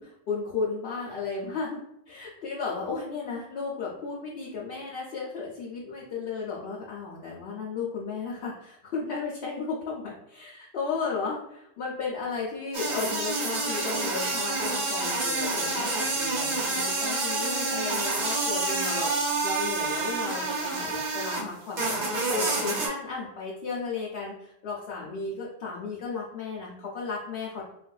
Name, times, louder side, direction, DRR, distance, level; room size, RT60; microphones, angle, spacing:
voice 1, 0.0-22.0 22.3-27.6, left 4 dB, 70° left, -5 dB, 0.8 m, -34 dB
sound 1, 12.7-21.5 21.8-22.9, right 3 dB, 50° right, 0.8 m, -28 dB
3.2 x 2.5 x 2.3 m, 0.80 s
omnidirectional pair, 1.1 m